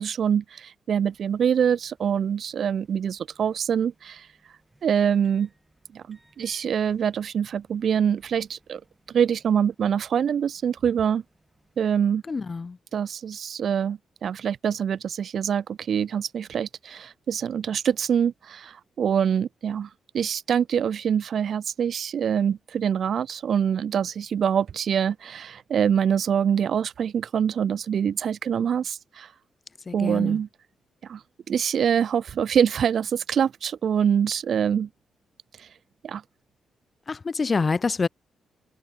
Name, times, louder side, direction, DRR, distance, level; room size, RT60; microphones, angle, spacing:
voice 1, 0.0-4.2 4.8-5.5 5.9-8.8 9.1-11.2 11.8-12.2 12.9-19.9 20.1-29.3 29.9-30.5 31.1-31.2 31.5-34.9 36.0-36.2, right 8 dB, 50° right, 0.3 m, -25 dB
sound 1, 1.0-12.0, right 1 dB, 10° right, 7.9 m, -65 dB
voice 2, 12.3-12.8 29.9-30.4 37.1-38.1, left 4 dB, 25° left, 0.3 m, -26 dB
wide cardioid pair, 170°, 0 cm